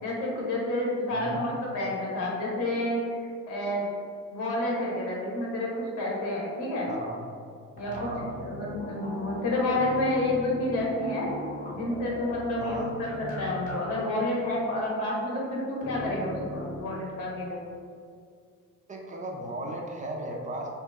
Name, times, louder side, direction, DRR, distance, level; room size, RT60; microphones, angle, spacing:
voice 1, 0.0-3.9 4.3-6.9 7.8-11.3 11.7-17.6, left 1 dB, 85° left, -4 dB, 1.2 m, -29 dB
voice 2, 6.9-7.2 7.9-8.2 12.6-12.9 18.9-20.7, right 1 dB, 25° right, -1 dB, 0.4 m, -36 dB
sound 1, 7.8-13.8 14.0-14.1 15.8-16.8, left 1 dB, 25° left, 0.7 m, -39 dB
3.0 x 2.8 x 3.4 m, 2.2 s
cardioid pair, 140°, 30 cm